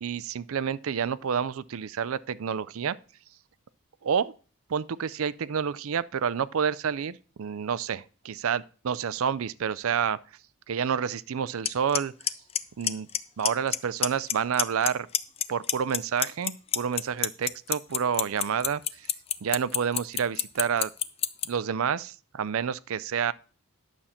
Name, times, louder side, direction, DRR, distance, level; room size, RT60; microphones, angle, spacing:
voice 1, 0.0-3.0 4.0-4.3 4.7-10.2 10.7-12.1 12.8-13.1 13.4-15.1 15.5-19.1 19.4-20.9 21.5-23.3, right 7 dB, 70° right, 0.4 m, -29 dB
Clock, 11.6-11.7 11.9-12.3 12.5-13.2 13.4-13.8 14.0-14.9 15.1-21.4, left 10 dB, 25° left, 0.4 m, -24 dB
11.0 x 7.2 x 4.3 m
head